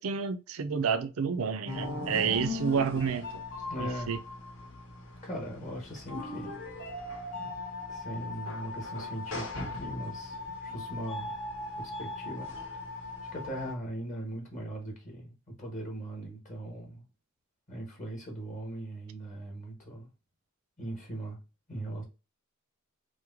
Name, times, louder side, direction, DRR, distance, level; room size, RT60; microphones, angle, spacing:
voice 1, 0.0-3.4 3.8-4.2, right 6 dB, 70° right, 0.5 m, -30 dB
sound 1, 1.7-13.7, left 2 dB, 65° left, 1.1 m, -39 dB
voice 2, 3.7-4.2 5.2-6.6 7.4-7.5 7.9-11.3 11.8-12.8 13.3-17.1 17.7-20.1 20.8-21.4 21.7-22.0, right 1 dB, 35° left, 1.1 m, -39 dB
3.1 x 2.1 x 3.4 m
head